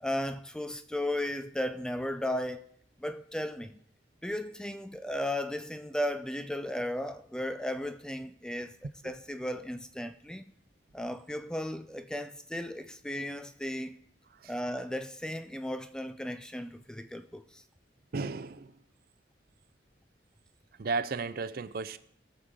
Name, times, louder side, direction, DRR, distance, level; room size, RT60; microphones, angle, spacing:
voice 1, 0.0-2.7 3.0-3.8 4.2-8.8 9.0-10.5 10.9-14.0 14.5-17.6, left 1 dB, 5° left, 0.3 m, -35 dB
voice 2, 18.1-18.7 20.8-22.0, right 4 dB, 55° right, 0.5 m, -34 dB
19.0 x 6.5 x 3.7 m
head